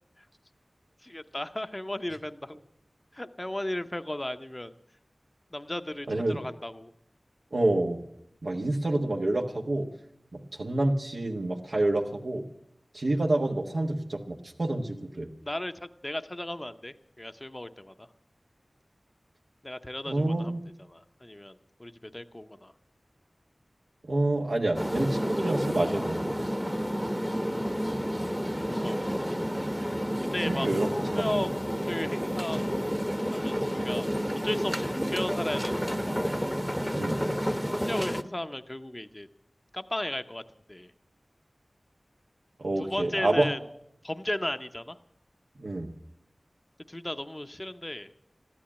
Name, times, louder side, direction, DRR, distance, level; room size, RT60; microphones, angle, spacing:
voice 1, 1.0-2.6 3.1-4.7 5.5-6.9 15.4-18.1 19.6-20.5 20.8-22.7 28.7-29.4 30.2-31.5 31.8-32.7 33.3-33.6 33.8-34.1 34.4-36.2 37.7-39.3 39.7-40.4 40.7-40.9 42.8-43.6 44.0-45.0 46.9-48.1, left 1 dB, 25° left, 9 dB, 0.7 m, -35 dB
voice 2, 6.1-6.4 7.5-8.0 8.4-9.9 10.3-12.4 12.9-15.3 20.1-20.6 24.1-26.3 30.5-31.4 36.9-37.2 42.6-43.5 45.6-45.9, right 2 dB, 75° right, 0 dB, 1.4 m, -28 dB
sound 1, 24.7-38.2, equal, ahead, 0.9 m, -30 dB
14.0 x 12.0 x 8.7 m, 0.74 s
wide cardioid pair, 55°, 0 cm